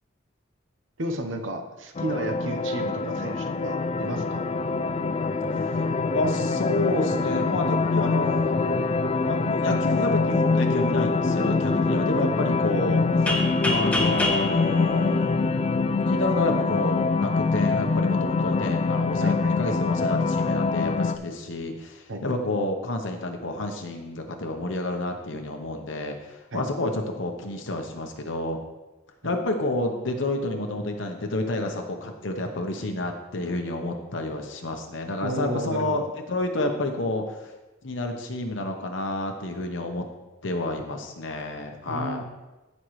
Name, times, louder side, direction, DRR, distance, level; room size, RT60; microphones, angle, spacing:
voice 1, 1.0-4.5 19.2-19.7 22.1-22.2 26.5-26.7 29.2-29.3 35.2-36.0 41.9-42.2, right 1 dB, 75° right, 5 dB, 1.0 m, -33 dB
sound 1, 1.9-21.2, left 4 dB, 30° left, 0.4 m, -24 dB
voice 2, 5.5-8.8 9.3-15.4 16.1-28.6 29.2-37.5 37.8-40.0 40.4-42.2, left 2 dB, 70° left, 4 dB, 0.9 m, -29 dB
sound 2, 13.3-16.0, left 1 dB, 5° left, 1.2 m, -28 dB
15.0 x 5.4 x 3.2 m, 1.1 s
head